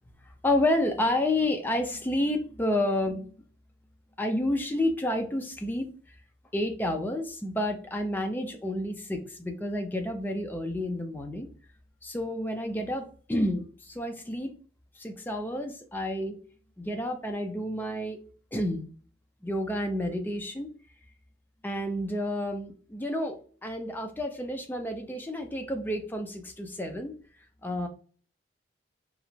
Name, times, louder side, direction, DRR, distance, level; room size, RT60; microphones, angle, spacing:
voice 1, 0.3-3.4 4.2-5.9 6.5-11.5 12.0-14.6 14.9-16.4 16.8-18.2 18.5-18.9 19.4-20.7 21.6-27.1 27.6-27.9, left 1 dB, 10° left, 4 dB, 0.3 m, -30 dB
2.4 x 2.0 x 3.0 m, 0.42 s
head